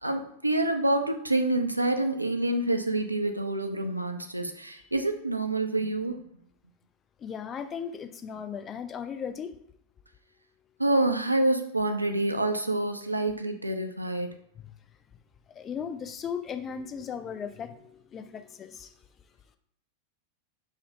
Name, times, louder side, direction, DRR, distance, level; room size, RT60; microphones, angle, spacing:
voice 1, 0.0-6.2 10.8-14.4, right 2 dB, 85° right, 6 dB, 0.3 m, -27 dB
voice 2, 7.2-9.6 15.5-18.9, left 7 dB, 25° left, 8 dB, 0.3 m, -37 dB
4.9 x 2.1 x 2.7 m, 0.71 s
figure-of-eight pair, 90°, 0 cm